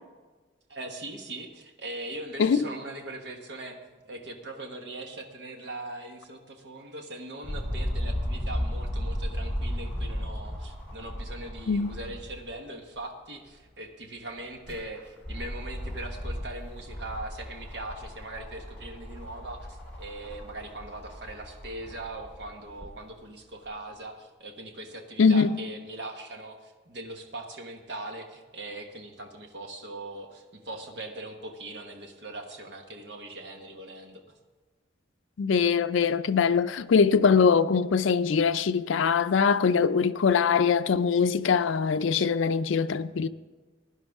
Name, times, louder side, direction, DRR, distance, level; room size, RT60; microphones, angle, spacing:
voice 1, 0.7-34.2, right 2 dB, 65° right, 1.2 m, -40 dB
sound 1, 7.4-12.5 12.9-13.0 14.4-22.9 23.7-23.8, equal, 10° left, 2.9 m, -35 dB
voice 2, 25.2-25.6 35.4-43.3, left 5 dB, 85° left, 0.4 m, -22 dB
16.0 x 11.0 x 3.6 m
head